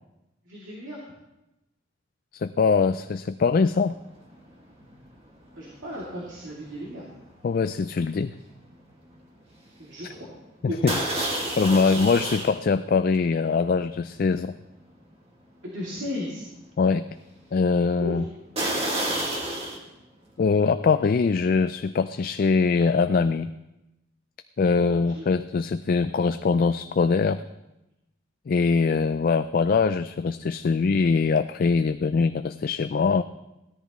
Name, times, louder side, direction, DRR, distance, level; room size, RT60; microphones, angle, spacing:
voice 1, 0.4-1.0 5.6-7.1 9.8-10.3 10.7-10.8 15.6-16.5 18.0-18.2 24.9-25.3, left 1 dB, 75° right, -5 dB, 2.7 m, -35 dB
voice 2, 2.3-4.0 7.4-8.3 10.6-11.0 11.6-14.5 16.8-17.1 17.5-18.3 20.4-23.5 24.6-27.4 28.5-33.2, left 4 dB, 50° left, 10 dB, 0.3 m, -22 dB
sound 1, 3.7-4.0 4.2-8.8 9.1-9.4 9.8-9.9 10.9-12.6 13.1-13.2 13.9-14.0 14.5-14.6 18.6-19.8, right 1 dB, 30° right, 2.0 m, -30 dB
17.5 x 13.5 x 3.1 m, 0.94 s
head